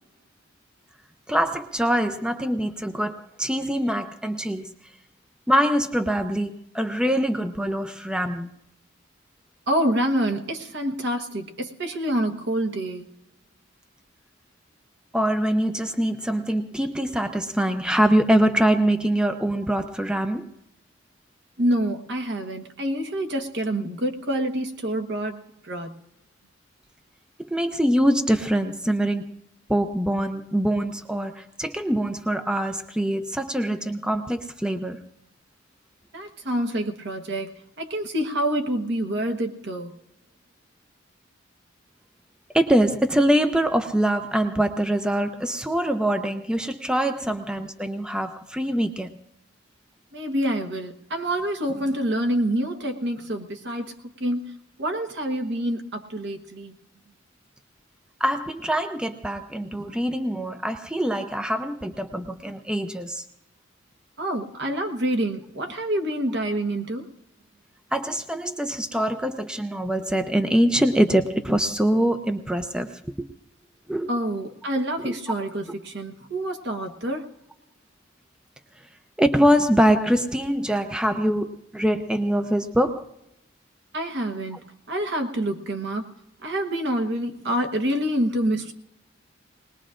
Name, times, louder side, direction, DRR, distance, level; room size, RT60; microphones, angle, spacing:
voice 1, 1.3-4.7 5.5-8.5 15.1-20.5 27.4-29.4 29.7-35.0 42.5-49.1 58.2-63.2 67.9-73.3 73.9-74.1 75.0-75.1 79.2-83.0, equal, 5° right, 0.6 m, -24 dB
voice 2, 9.7-13.1 21.6-26.0 36.1-39.9 50.1-56.7 64.2-67.1 74.1-77.3 83.9-84.6 84.9-86.1 86.4-88.7, right 1 dB, 60° right, 1.3 m, -27 dB
20.5 x 20.0 x 2.5 m
head